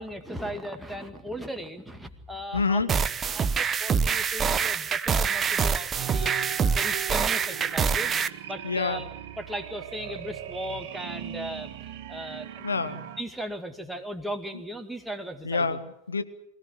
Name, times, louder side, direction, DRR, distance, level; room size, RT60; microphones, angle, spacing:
voice 1, 0.0-2.8 3.3-6.3 6.7-8.1 8.5-9.1 9.4-11.7 12.1-12.6 13.2-15.8, equal, ahead, 4 dB, 2.2 m, -37 dB
voice 2, 2.5-2.9 8.6-9.1 12.6-13.0 14.5-14.6 15.4-16.2, left 4 dB, 75° left, 11 dB, 1.4 m, -27 dB
sound 1, 2.9-8.3, right 6 dB, 20° right, 0.8 m, -25 dB
sound 2, 6.0-13.2, right 11 dB, 50° right, 2.1 m, -39 dB
24.5 x 16.5 x 9.6 m, 0.81 s
figure-of-eight pair, 90°, 0 cm